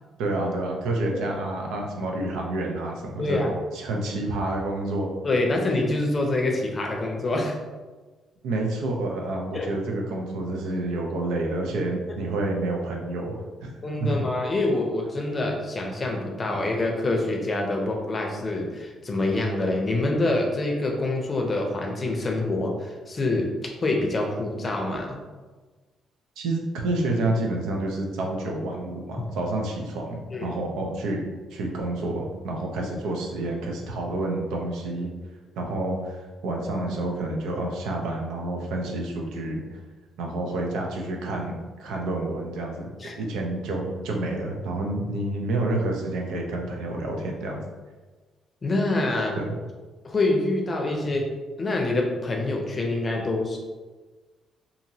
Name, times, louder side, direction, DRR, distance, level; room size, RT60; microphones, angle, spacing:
voice 1, 0.2-5.1 8.4-13.7 14.0-14.2 26.4-31.2 31.5-35.1 35.6-39.8 40.2-41.5 41.8-47.6 49.4-49.5, right 2 dB, 90° right, 1 dB, 0.5 m, -29 dB
voice 2, 3.2-3.5 5.2-7.6 9.5-9.7 13.8-25.2 30.3-30.5 43.0-43.1 48.6-49.4 50.0-51.2 51.6-53.6, left 2 dB, 35° left, 1 dB, 0.5 m, -26 dB
2.8 x 2.6 x 2.7 m, 1.3 s
cardioid pair, 90°, 0 cm